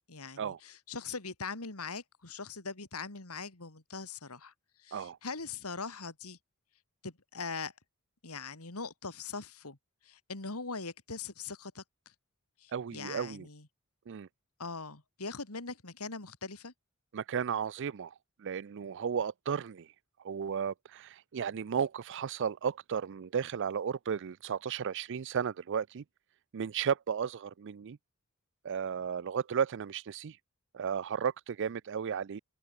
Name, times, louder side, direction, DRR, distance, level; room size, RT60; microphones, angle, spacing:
voice 1, 0.0-4.5 4.8-6.4 7.0-7.7 8.2-9.8 10.0-11.8 12.6-13.7 14.6-16.7, left 4 dB, 85° left, 2.8 m, -41 dB
voice 2, 12.7-13.5 14.1-14.3 17.1-19.9 20.2-26.0 26.5-28.0 28.6-30.4 30.7-32.4, right 7 dB, 55° right, 0.4 m, -34 dB
open air
head